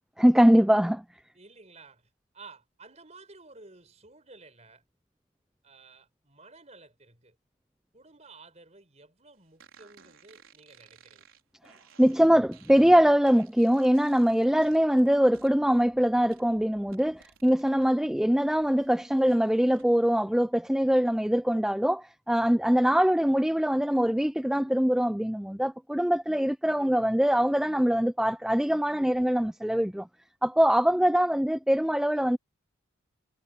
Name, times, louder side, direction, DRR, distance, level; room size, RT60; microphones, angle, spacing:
voice 1, 0.2-1.0 12.0-30.1 30.4-32.4, equal, ahead, 0.3 m, -23 dB
voice 2, 1.3-4.8 5.6-7.4 7.9-11.2, right 3 dB, 30° right, 4.7 m, -53 dB
sound 1, 9.6-17.9 18.3-19.9, right 6 dB, 75° right, 4.5 m, -58 dB
head